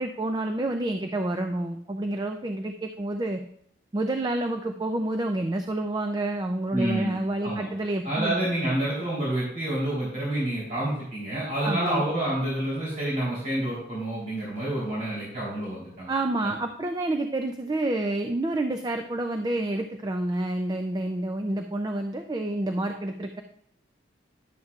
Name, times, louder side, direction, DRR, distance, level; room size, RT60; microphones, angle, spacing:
voice 1, 0.0-3.4 3.9-8.4 11.6-12.0 16.1-23.4, right 1 dB, 20° right, 6 dB, 0.4 m, -28 dB
voice 2, 6.7-7.1 7.4-7.6 8.0-16.1, right 1 dB, 45° right, -8 dB, 3.4 m, -28 dB
11.0 x 8.0 x 2.4 m, 0.71 s
head